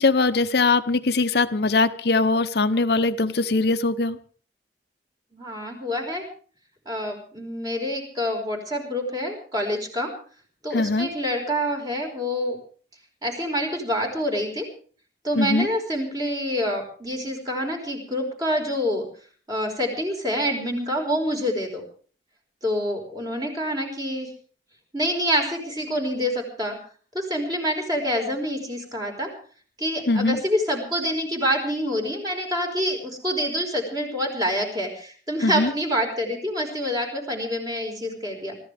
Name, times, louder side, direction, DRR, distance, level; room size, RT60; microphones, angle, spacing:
voice 1, 0.0-4.2 10.7-11.1 15.4-15.7 30.1-30.4 35.4-35.7, left 3 dB, 65° left, 10 dB, 0.8 m, -21 dB
voice 2, 5.3-6.2 6.8-10.1 10.6-12.6 13.2-14.7 15.2-19.1 19.5-21.8 22.6-24.3 24.9-26.8 27.1-29.3 29.8-38.6, equal, 20° right, 2 dB, 4.8 m, -27 dB
25.5 x 14.5 x 3.5 m, 0.42 s
head